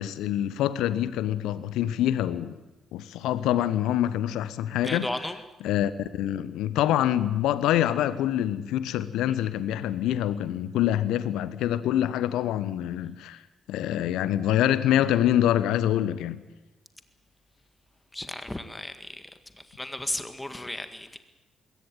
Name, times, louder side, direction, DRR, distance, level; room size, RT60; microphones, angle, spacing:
voice 1, 0.0-2.6 2.9-5.1 5.6-13.4 13.7-16.4, left 12 dB, 70° left, 15 dB, 1.1 m, -25 dB
voice 2, 4.8-5.4 18.1-19.2 19.8-21.2, left 1 dB, 15° left, 9 dB, 1.8 m, -34 dB
22.0 x 17.5 x 9.2 m, 1.1 s
figure-of-eight pair, 40°, 0 cm